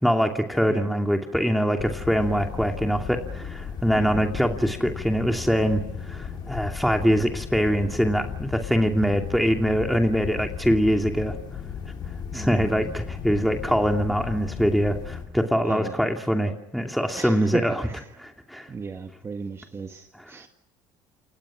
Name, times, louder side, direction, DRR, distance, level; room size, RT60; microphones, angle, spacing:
voice 1, 0.0-11.4 11.9-12.0 12.3-17.8 18.2-18.7, equal, ahead, 3 dB, 2.6 m, -23 dB
sound 1, 1.8-15.3, left 7 dB, 55° left, 6.2 m, -35 dB
voice 2, 4.0-4.3 8.7-8.9 12.3-13.0 15.7-16.0 17.2-18.1 18.7-20.5, right 5 dB, 30° right, 5 dB, 1.9 m, -36 dB
28.5 x 27.5 x 6.3 m, 0.88 s
supercardioid pair, 100°, 9 cm